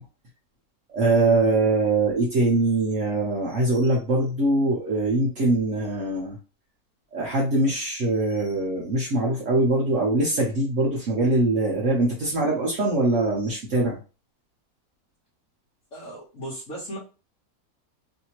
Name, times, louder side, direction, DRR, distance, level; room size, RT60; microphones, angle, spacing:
voice 1, 0.9-6.4 7.1-14.0, right 2 dB, 60° right, -3 dB, 1.2 m, -22 dB
voice 2, 15.9-17.0, right 1 dB, 60° left, -7 dB, 1.4 m, -36 dB
3.3 x 2.8 x 2.9 m, 0.33 s
omnidirectional pair, 1.6 m